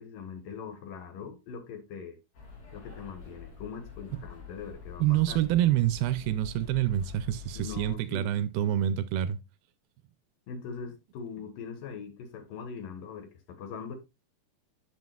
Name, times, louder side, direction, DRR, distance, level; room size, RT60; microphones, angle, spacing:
voice 1, 0.0-2.2 2.7-5.4 7.5-8.3 10.5-14.0, left 6 dB, 65° left, 2.9 m, -41 dB
sound 1, 2.3-7.9, left 7 dB, 85° left, 4.8 m, -45 dB
voice 2, 5.0-9.4, right 12 dB, 80° right, 2.3 m, -27 dB
9.5 x 7.5 x 2.3 m
omnidirectional pair, 4.4 m